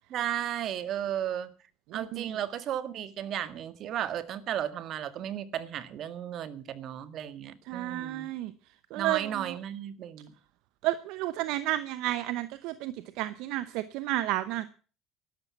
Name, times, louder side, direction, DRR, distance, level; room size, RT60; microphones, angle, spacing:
voice 1, 0.1-1.5 1.9-8.3 9.0-10.3, right 10 dB, 55° right, 12 dB, 1.8 m, -34 dB
voice 2, 1.9-2.3 7.7-8.5 8.9-9.5 10.8-14.7, right 15 dB, 75° right, 13 dB, 0.9 m, -32 dB
12.5 x 12.0 x 7.1 m, 0.39 s
supercardioid pair, 85°, 0 cm